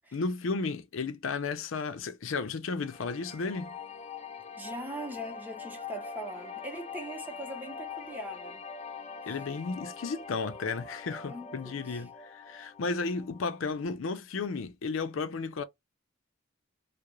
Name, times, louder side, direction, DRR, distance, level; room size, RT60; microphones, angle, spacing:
voice 1, 0.1-3.7 9.3-15.6, left 4 dB, 90° left, 0.5 m, -33 dB
sound 1, 2.8-13.9, left 5 dB, 35° left, 0.4 m, -44 dB
voice 2, 4.6-8.6 11.3-12.0, right 1 dB, 10° right, 0.7 m, -41 dB
2.4 x 2.0 x 2.9 m
head